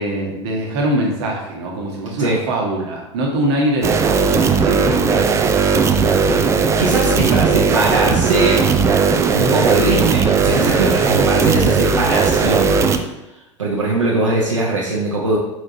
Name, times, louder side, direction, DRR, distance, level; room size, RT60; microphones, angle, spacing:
voice 1, 0.0-5.5, right 1 dB, 55° right, 0 dB, 1.1 m, -23 dB
sound 1, 3.8-13.0, right 5 dB, 20° right, 0.3 m, -16 dB
voice 2, 6.7-8.6 9.3-12.9 13.6-15.4, right 2 dB, 80° right, -4 dB, 0.8 m, -20 dB
4.8 x 4.2 x 2.6 m, 0.94 s
figure-of-eight pair, 80°, 16 cm